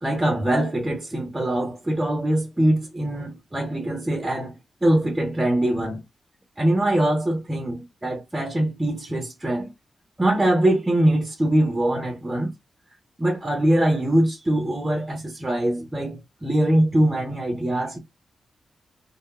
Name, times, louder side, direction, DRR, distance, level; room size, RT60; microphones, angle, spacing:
voice 1, 0.0-6.0 6.6-9.7 10.2-12.5 13.2-18.0, right 1 dB, 15° right, 0.7 m, -23 dB
3.4 x 2.0 x 2.2 m
wide cardioid pair, 115°, 0 cm